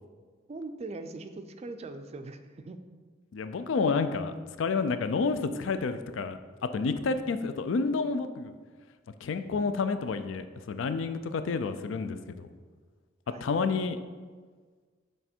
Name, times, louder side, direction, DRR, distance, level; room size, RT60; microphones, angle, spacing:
voice 1, 0.5-2.8 13.3-13.7, right 3 dB, 35° right, 8 dB, 0.4 m, -41 dB
voice 2, 3.3-6.4 6.7-8.5 9.2-12.5 13.4-14.0, left 4 dB, 70° left, 10 dB, 0.4 m, -29 dB
6.6 x 3.3 x 4.4 m, 1.5 s
head